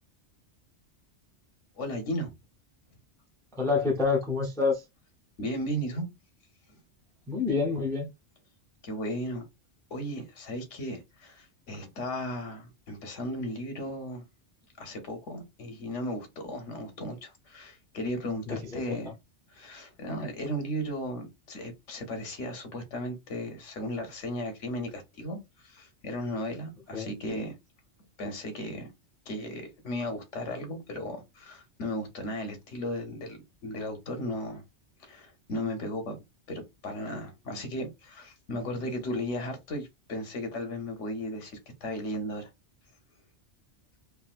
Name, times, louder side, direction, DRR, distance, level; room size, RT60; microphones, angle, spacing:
voice 1, 1.8-2.3 5.4-6.1 8.8-9.5 9.9-14.2 14.8-19.1 19.5-27.5 28.2-28.9 29.3-34.6 35.0-36.2 36.5-42.5, equal, 90° left, 1.2 m, -35 dB
voice 2, 3.5-4.8 7.3-8.1 18.4-19.1 26.9-27.1, left 4 dB, 5° left, 0.4 m, -28 dB
3.4 x 2.4 x 2.4 m
omnidirectional pair, 1.2 m